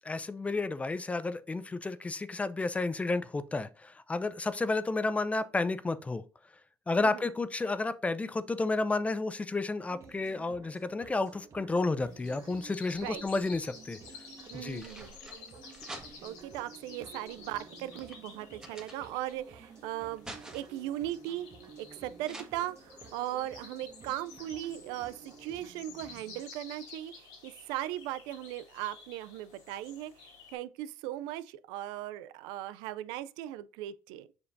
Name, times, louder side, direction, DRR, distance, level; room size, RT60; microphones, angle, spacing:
voice 1, 0.0-6.2 6.9-14.0 14.5-14.9, left 3 dB, 20° left, 0.5 m, -31 dB
sound 1, 9.8-26.4, right 5 dB, 45° right, 1.3 m, -52 dB
sound 2, 12.0-30.5, left 5 dB, 80° left, 3.5 m, -52 dB
sound 3, 12.7-13.5 14.4-16.5 17.2-19.5 19.8-20.9 22.2-22.4, right 1 dB, 10° right, 1.5 m, -49 dB
voice 2, 14.5-15.1 16.2-20.3 20.5-21.5 21.8-34.3, right 13 dB, 85° right, 0.4 m, -38 dB
7.0 x 5.2 x 2.6 m
supercardioid pair, 90°, 7 cm